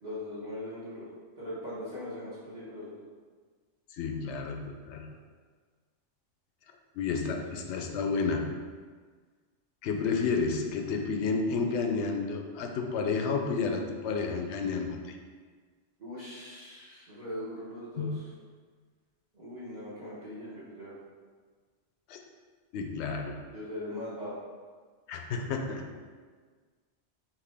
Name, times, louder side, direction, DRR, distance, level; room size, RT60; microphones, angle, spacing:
voice 1, 0.0-1.0 1.4-3.0 7.3-7.8 16.0-18.3 19.3-20.9 23.5-24.4, left 1 dB, 40° right, -11 dB, 1.1 m, -40 dB
voice 2, 3.9-5.1 7.0-8.5 9.8-15.1 18.0-18.2 22.1-22.2 22.7-23.4 25.1-25.9, left 4 dB, 75° left, 3 dB, 0.8 m, -31 dB
4.8 x 3.0 x 3.4 m, 1.5 s
omnidirectional pair, 1.2 m